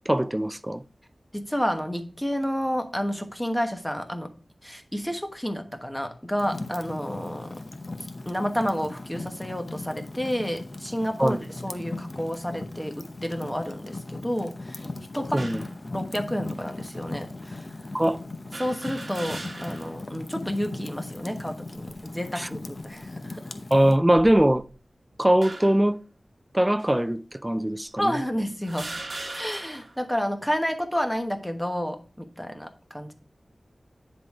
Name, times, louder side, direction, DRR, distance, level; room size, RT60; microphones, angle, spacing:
voice 1, 0.1-0.8 11.2-11.4 15.3-15.6 17.9-18.2 22.4-22.5 23.7-24.6 25.2-26.0 26.5-28.1, right 1 dB, 15° right, 0.5 m, -21 dB
voice 2, 1.3-4.3 4.6-7.6 8.2-14.9 15.1-15.5 15.9-17.7 18.6-23.5 28.0-28.9 29.3-33.1, equal, 5° left, 1.2 m, -30 dB
Fire, 6.4-24.0, left 2 dB, 50° left, 0.8 m, -38 dB
sound 1, 15.4-15.7 16.6-16.7 18.5-20.0 20.4-20.5 21.6-22.1 22.8-23.0 24.0-24.8 25.4-25.9 26.8-26.9 27.8-27.9 28.6-30.0, right 2 dB, 60° right, 1.2 m, -39 dB
9.9 x 3.9 x 4.8 m
wide cardioid pair, 55°, 0 cm